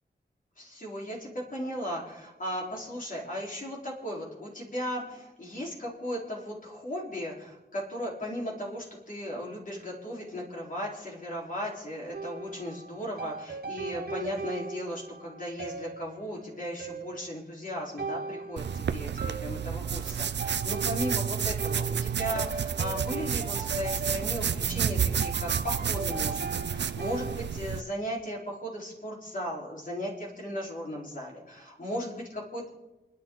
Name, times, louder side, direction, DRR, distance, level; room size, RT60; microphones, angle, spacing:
voice 1, 0.6-32.7, equal, 50° left, -4 dB, 4.4 m, -36 dB
sound 1, 12.1-27.4, right 4 dB, 60° right, 1.4 m, -39 dB
sound 2, 18.6-27.8, right 7 dB, 80° right, 0.6 m, -30 dB
28.5 x 11.5 x 4.0 m, 1.1 s
wide cardioid pair, 105°, 18 cm